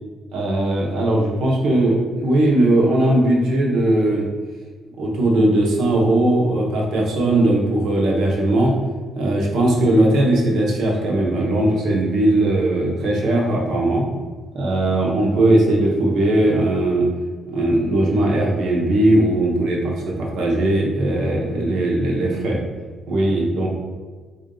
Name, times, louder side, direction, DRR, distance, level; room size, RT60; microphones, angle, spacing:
voice 1, 0.3-4.3 5.0-8.7 9.1-14.1 14.5-17.1 17.5-22.6 23.1-23.7, right 1 dB, 70° right, -2 dB, 0.9 m, -19 dB
3.6 x 2.7 x 3.8 m, 1.4 s
cardioid pair, 155°, 0 cm